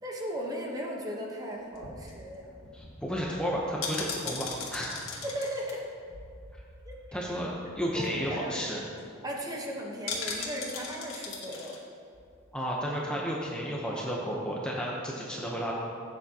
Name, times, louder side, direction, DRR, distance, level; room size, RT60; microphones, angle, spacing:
voice 1, 0.0-2.7 5.2-5.8 6.8-7.2 8.0-8.6 9.2-11.8, equal, 15° right, -1 dB, 1.1 m, -36 dB
sound 1, 1.6-7.0 7.3-7.4 7.6-7.9 8.3-8.4 8.6-9.0 10.1-11.8 12.1-12.2, left 4 dB, 65° left, 1.7 m, -39 dB
voice 2, 2.7-4.9 7.1-8.8 12.5-15.7, equal, 5° left, -4 dB, 0.9 m, -32 dB
15.5 x 8.3 x 2.9 m, 2.4 s
head